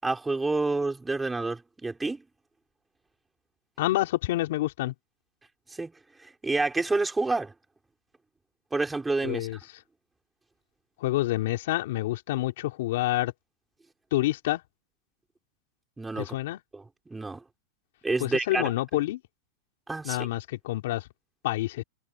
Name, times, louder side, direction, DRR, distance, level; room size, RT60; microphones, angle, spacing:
voice 1, 0.0-2.2 5.7-5.9 6.2-7.5 8.7-9.6 16.0-16.3 16.7-17.4 18.0-18.7 19.9-20.3, right 3 dB, 10° right, 5.0 m, -29 dB
voice 2, 3.8-4.9 9.2-9.6 11.0-13.3 14.1-14.6 16.2-16.6 18.2-19.2 20.0-21.1 21.4-21.8, left 16 dB, 65° left, 4.1 m, -28 dB
supercardioid pair, 145°, 0 cm